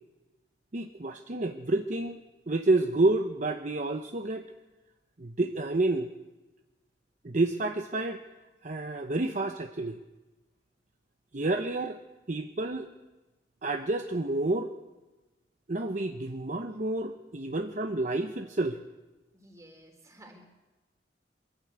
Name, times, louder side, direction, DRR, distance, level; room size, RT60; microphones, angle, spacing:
voice 1, 0.7-2.2 2.5-4.5 5.2-6.1 7.2-8.2 8.6-10.0 11.3-12.0 12.3-12.9 13.6-14.7 15.7-18.8, right 2 dB, 45° right, 6 dB, 0.8 m, -29 dB
voice 2, 19.3-20.5, right 1 dB, 20° right, 3 dB, 3.7 m, -53 dB
22.5 x 14.5 x 8.1 m, 1.1 s
head